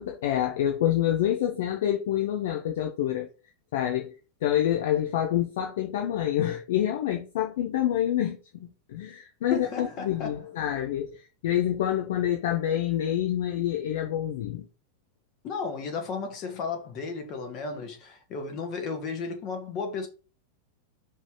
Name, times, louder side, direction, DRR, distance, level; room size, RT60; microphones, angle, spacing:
voice 1, 0.0-3.3 3.7-4.1 4.4-14.7, left 11 dB, 55° left, 0.8 m, -27 dB
voice 2, 9.5-10.5 15.4-20.1, left 4 dB, 35° left, 1.8 m, -34 dB
5.1 x 3.3 x 5.6 m
figure-of-eight pair, 90°, 0 cm